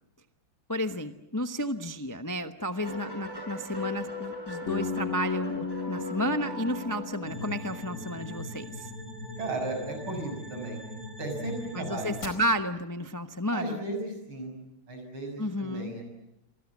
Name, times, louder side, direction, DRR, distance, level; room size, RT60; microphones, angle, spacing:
voice 1, 0.7-8.9 11.7-13.8 15.4-15.9, equal, 20° left, 8 dB, 0.5 m, -32 dB
sound 1, 2.8-7.8, left 1 dB, 10° right, 6.9 m, -39 dB
Bass guitar, 4.7-8.7, left 4 dB, 70° left, 2.8 m, -36 dB
sound 2, 7.3-12.3, left 1 dB, 45° left, 4.9 m, -40 dB
voice 2, 9.4-10.8 11.2-12.2 13.5-14.5 14.9-16.0, right 2 dB, 85° right, 5 dB, 7.3 m, -35 dB
29.0 x 23.5 x 7.3 m, 0.87 s
omnidirectional pair, 2.2 m